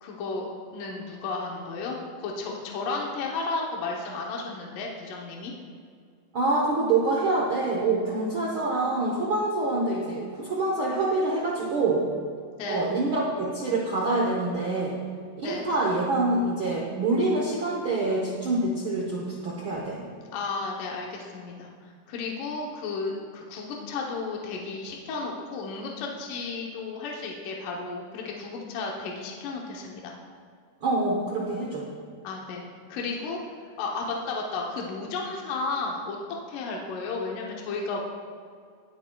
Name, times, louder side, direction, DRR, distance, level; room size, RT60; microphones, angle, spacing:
voice 1, 0.0-5.5 12.6-12.9 15.4-15.7 20.0-21.7 22.1-30.1 32.2-32.6 32.9-33.4 33.8-36.2 36.5-38.0, left 3 dB, 75° left, -1 dB, 2.5 m, -33 dB
voice 2, 6.3-12.0 12.7-15.0 15.4-20.0 30.8-31.9, right 2 dB, 80° right, -3 dB, 1.1 m, -26 dB
18.0 x 7.6 x 2.3 m, 2.1 s
omnidirectional pair, 3.8 m